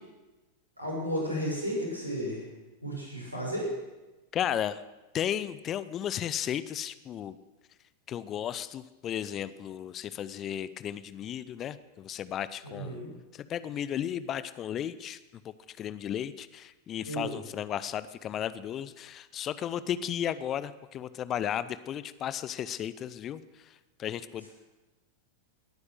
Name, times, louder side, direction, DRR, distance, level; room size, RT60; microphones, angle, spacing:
voice 1, 0.8-2.4 2.8-3.7 12.6-13.1 17.1-17.3, equal, 85° right, -3 dB, 6.6 m, -33 dB
voice 2, 4.3-4.8 5.1-7.3 8.1-13.0 13.5-15.2 15.8-23.4 24.0-24.5, left 10 dB, 30° left, 15 dB, 0.6 m, -34 dB
19.0 x 9.6 x 6.5 m, 1.1 s
figure-of-eight pair, 90°, 0 cm